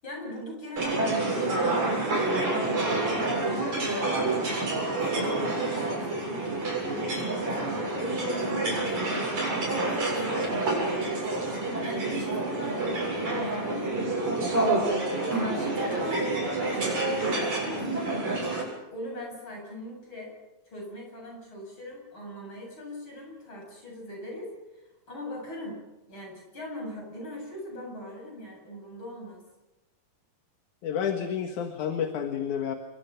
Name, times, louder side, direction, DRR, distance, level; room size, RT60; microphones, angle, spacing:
voice 1, 0.0-10.8 11.8-14.7 15.2-16.1 16.6-18.1 18.9-20.3 20.7-24.5 25.1-25.8 26.1-29.4, left 1 dB, 35° left, 0 dB, 8.8 m, -41 dB
sound 1, 0.8-18.6, right 2 dB, 60° right, 9.1 m, -28 dB
voice 2, 30.8-32.7, left 8 dB, 70° left, 5 dB, 2.9 m, -30 dB
27.5 x 23.5 x 5.9 m, 0.98 s
omnidirectional pair, 3.7 m